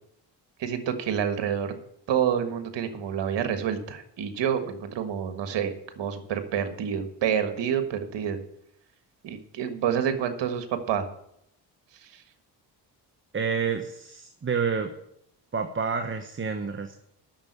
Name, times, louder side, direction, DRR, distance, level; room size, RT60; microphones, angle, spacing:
voice 1, 0.6-1.7 2.1-8.4 9.2-11.1 12.0-12.2, right 8 dB, 75° right, 8 dB, 1.6 m, -28 dB
voice 2, 13.3-14.9 15.5-16.9, right 6 dB, 30° right, 7 dB, 1.1 m, -29 dB
8.8 x 6.8 x 8.1 m, 0.75 s
cardioid pair, 70°, 43 cm